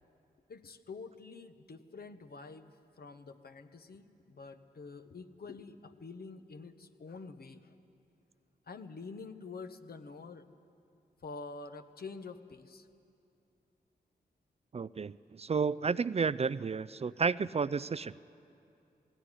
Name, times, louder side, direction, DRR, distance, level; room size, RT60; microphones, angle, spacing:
voice 1, 0.5-7.7 8.7-10.5 11.2-12.9 17.4-17.5, left 4 dB, 60° left, 9 dB, 1.1 m, -47 dB
voice 2, 14.7-18.1, right 5 dB, 35° right, 18 dB, 0.4 m, -32 dB
18.0 x 16.5 x 9.9 m, 2.6 s
cardioid pair, 45°, 18 cm